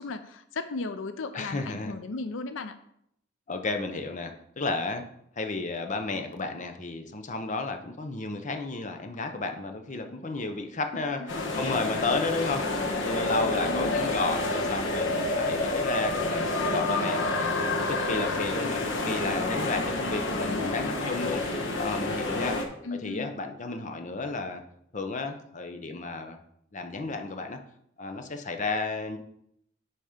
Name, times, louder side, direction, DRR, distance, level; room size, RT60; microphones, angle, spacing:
voice 1, 0.0-2.8 11.2-11.3 11.5-11.7 13.6-14.2 20.3-21.0 22.8-23.3, left 3 dB, 90° left, 10 dB, 0.5 m, -36 dB
voice 2, 1.3-1.9 3.5-5.1 5.4-12.6 12.9-17.5 17.8-21.4 21.8-22.6 23.0-24.6 24.9-26.4 26.7-27.6 28.0-29.2, left 3 dB, 40° left, 6 dB, 0.8 m, -32 dB
sound 1, 11.3-22.6, left 2 dB, 75° left, 1.2 m, -29 dB
9.1 x 4.2 x 5.0 m, 0.73 s
head